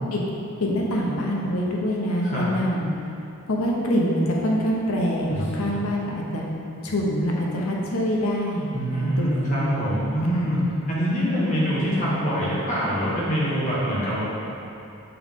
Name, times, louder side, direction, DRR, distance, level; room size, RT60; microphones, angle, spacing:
voice 1, 0.6-2.9 3.5-6.4 6.8-9.5 10.3-10.5, equal, 85° left, -2 dB, 0.8 m, -25 dB
voice 2, 8.7-14.2, equal, 35° left, -8 dB, 1.3 m, -24 dB
7.0 x 3.8 x 3.6 m, 2.7 s
head